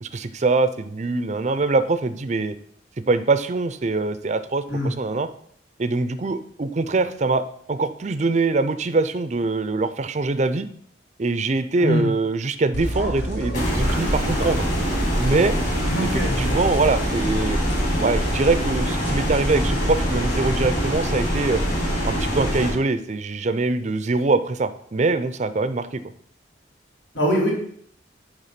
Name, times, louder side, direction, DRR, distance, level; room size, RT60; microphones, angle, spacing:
voice 1, 0.0-2.6 3.1-5.3 5.8-10.7 11.2-14.6 15.2-15.5 16.0-17.6 18.0-21.6 22.0-26.0, right 3 dB, 40° right, 12 dB, 0.5 m, -23 dB
sound 1, 12.7-20.9, equal, 65° left, 1.6 m, -29 dB
sound 2, 13.5-22.7, equal, 45° left, 3.6 m, -24 dB
voice 2, 15.9-16.3 27.1-27.5, equal, 85° left, -3 dB, 3.0 m, -22 dB
9.2 x 3.5 x 5.7 m, 0.63 s
head